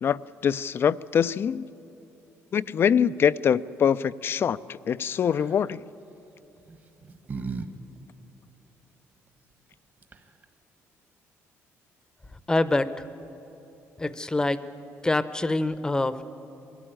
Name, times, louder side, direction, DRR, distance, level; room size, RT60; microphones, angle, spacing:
voice 1, 0.0-1.7 2.5-5.8, left 8 dB, 45° left, 0.4 m, -24 dB
sound 1, 5.2-5.6 6.6-7.7 8.0-8.1 9.7-9.8 10.0-10.4, right 4 dB, 35° right, 1.2 m, -37 dB
voice 2, 12.5-13.0 14.0-14.6 15.0-16.2, left 2 dB, 15° left, 0.7 m, -25 dB
21.0 x 14.0 x 9.0 m
cardioid pair, 105°, 6 cm